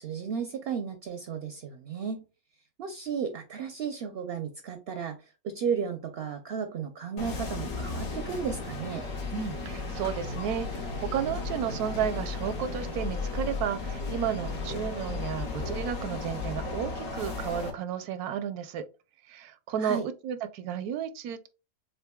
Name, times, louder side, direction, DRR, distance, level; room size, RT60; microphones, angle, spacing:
voice 1, 0.0-2.2 2.8-5.2 5.4-9.1 19.8-20.1, right 7 dB, 60° right, 0.6 m, -34 dB
sound 1, 7.2-17.7, left 3 dB, 70° left, 1.6 m, -35 dB
voice 2, 9.3-18.8 19.3-21.5, right 8 dB, 85° right, 1.1 m, -33 dB
6.4 x 2.6 x 2.2 m
omnidirectional pair, 1.6 m